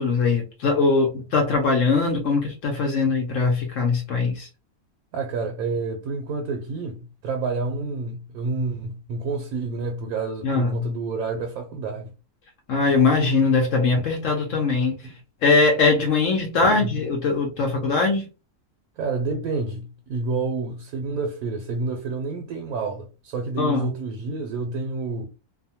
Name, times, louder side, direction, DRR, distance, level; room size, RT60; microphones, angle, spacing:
voice 1, 0.0-4.5 10.4-10.9 12.7-15.0 15.4-18.3 23.6-23.9, left 4 dB, 65° left, 0.9 m, -21 dB
voice 2, 5.1-12.1 15.0-15.1 16.6-17.0 19.0-25.3, right 4 dB, 75° right, 1.1 m, -29 dB
2.6 x 2.2 x 2.7 m
omnidirectional pair, 1.6 m